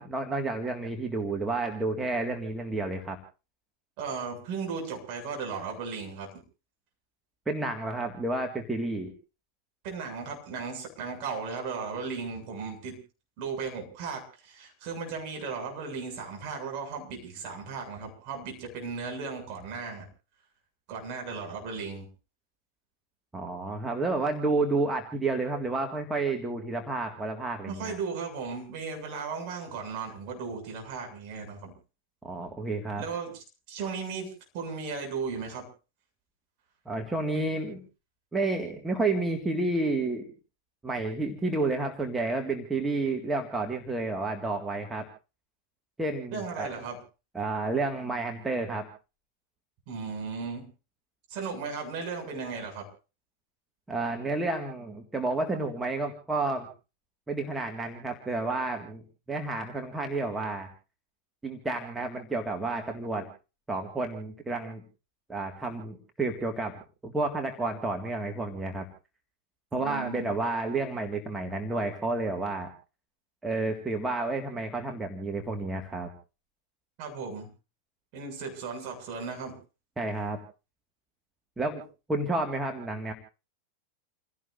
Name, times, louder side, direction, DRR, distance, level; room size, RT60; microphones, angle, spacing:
voice 1, 0.0-3.2 7.5-9.1 23.3-28.0 32.2-33.0 36.9-37.8 38.3-40.3 40.8-45.1 46.0-46.8 47.3-48.9 53.9-56.7 57.3-59.0 59.3-60.7 61.4-63.2 63.7-64.8 65.3-68.9 69.7-72.7 73.4-76.1 80.0-80.4 81.6-81.8 82.1-83.1, right 2 dB, 10° right, 3 dB, 2.0 m, -30 dB
voice 2, 4.0-6.3 9.8-13.0 13.4-20.1 20.9-22.1 27.7-31.7 33.0-35.7 46.3-47.0 49.9-50.7 51.3-52.9 69.7-70.3 77.0-77.5 78.1-79.6, right 5 dB, 45° right, 2 dB, 7.3 m, -36 dB
29.0 x 16.5 x 2.7 m, 0.33 s
figure-of-eight pair, 90°, 0 cm